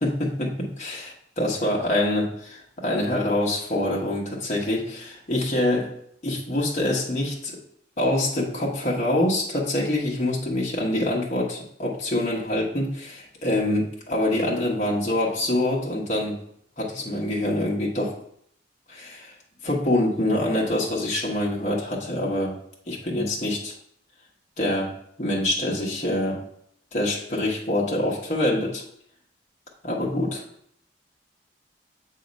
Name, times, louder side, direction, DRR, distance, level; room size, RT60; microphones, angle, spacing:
voice 1, 0.0-5.9 6.2-7.6 8.0-16.4 16.8-18.2 18.9-19.3 19.6-22.6 22.9-23.7 24.6-26.4 26.9-28.8 29.8-30.4, left 1 dB, 40° left, -3 dB, 1.1 m, -25 dB
7.1 x 2.8 x 5.2 m, 0.69 s
head